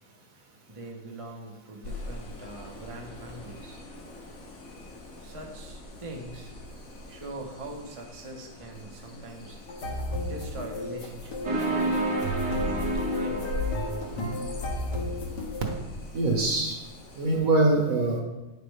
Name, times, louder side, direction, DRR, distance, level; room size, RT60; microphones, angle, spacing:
voice 1, 0.7-3.8 5.2-6.5 7.1-9.6 10.2-12.5 12.9-13.6, right 2 dB, 25° right, 1 dB, 0.7 m, -42 dB
sound 1, 1.8-17.4, left 2 dB, 55° left, 1.4 m, -40 dB
sound 2, 9.7-15.8, left 1 dB, 70° left, 2.0 m, -34 dB
sound 3, 11.4-14.4, right 1 dB, 75° right, 2.1 m, -30 dB
voice 2, 16.1-16.8 17.1-18.2, right 2 dB, 55° right, 1 dB, 1.6 m, -23 dB
9.6 x 6.7 x 3.3 m, 1.0 s
omnidirectional pair, 1.9 m